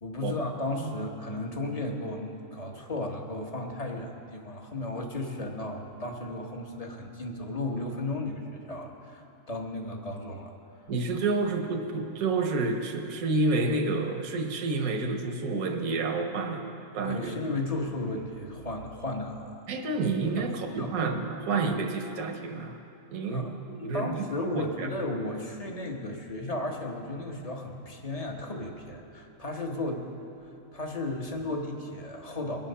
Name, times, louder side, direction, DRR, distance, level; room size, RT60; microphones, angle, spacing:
voice 1, 0.0-10.5 17.0-19.5 20.4-20.5 20.8-20.9 23.3-23.5 23.8-30.1 30.7-32.7, left 2 dB, 30° left, 2 dB, 1.2 m, -34 dB
voice 2, 10.9-16.6 16.9-17.3 19.7-22.8 23.1-24.1 24.5-24.9, right 3 dB, 80° right, 3 dB, 1.3 m, -29 dB
21.5 x 7.6 x 5.6 m, 2.7 s
omnidirectional pair, 1.5 m